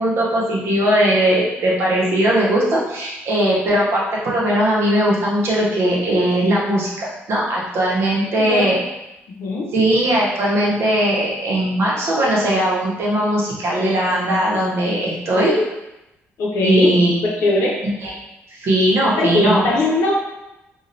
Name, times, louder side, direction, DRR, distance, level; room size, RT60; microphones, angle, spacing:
voice 1, 0.0-8.8 9.7-15.6 16.6-17.2 18.0-18.1 18.5-19.7, right 1 dB, 60° right, -4 dB, 0.8 m, -19 dB
voice 2, 16.4-16.9 17.2-17.7 19.0-20.1, left 2 dB, 80° left, -3 dB, 0.6 m, -20 dB
3.0 x 2.2 x 2.6 m, 0.94 s
cardioid pair, 160°, 5 cm